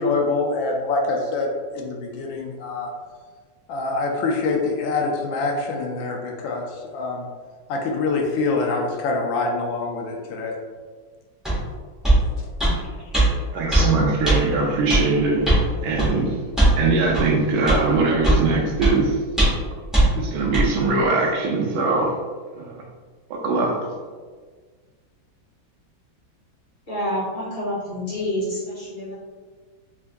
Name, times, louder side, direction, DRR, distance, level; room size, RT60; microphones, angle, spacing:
voice 1, 0.0-1.5 1.7-2.9 3.7-7.2 7.7-10.5, left 3 dB, 80° left, 0 dB, 1.3 m, -25 dB
sound 1, 11.4-11.6 12.0-12.2 12.6-12.8 13.1-13.3 13.7-13.9 14.2-14.4 14.9-15.0 15.4-15.6 16.0-16.1 16.6-16.8 17.1-17.3 17.7-17.8 18.2-18.4 18.8-18.9 19.4-19.6 19.9-20.1 20.5-20.7, right 1 dB, ahead, 0.7 m, -17 dB
voice 2, 13.5-16.4 16.8-19.2 20.2-22.2 22.6-22.8 23.3-23.9, right 3 dB, 80° right, 0 dB, 1.4 m, -21 dB
voice 3, 26.9-29.1, equal, 30° left, -10 dB, 1.0 m, -28 dB
3.5 x 3.5 x 2.2 m, 1.5 s
omnidirectional pair, 2.1 m